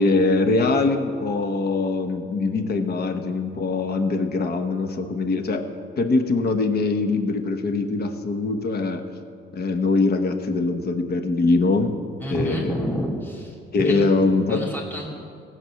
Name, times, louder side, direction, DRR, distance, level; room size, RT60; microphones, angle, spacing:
voice 1, 0.0-5.6 6.0-9.0 9.5-12.0 12.3-12.7 13.7-14.7, left 3 dB, 55° left, 7 dB, 1.2 m, -22 dB
voice 2, 12.2-13.6 13.8-14.0 14.5-15.1, equal, 10° left, -3 dB, 2.4 m, -29 dB
17.0 x 6.1 x 7.8 m, 2.2 s
cardioid pair, 90°, 20 cm